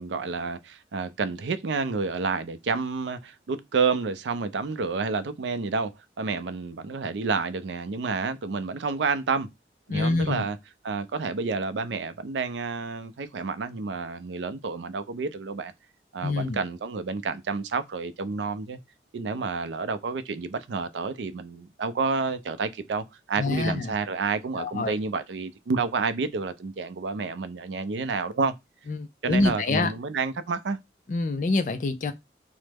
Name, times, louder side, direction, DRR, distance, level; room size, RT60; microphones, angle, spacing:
voice 1, 0.0-5.9 6.2-9.5 9.9-10.6 10.8-15.7 16.1-18.8 19.1-28.5 29.2-30.8, right 4 dB, 90° right, 0.4 m, -29 dB
voice 2, 9.9-10.4 16.2-16.6 23.4-23.9 24.6-25.0 28.9-29.9 31.1-32.1, left 3 dB, 45° left, 0.3 m, -26 dB
3.1 x 2.0 x 3.3 m
head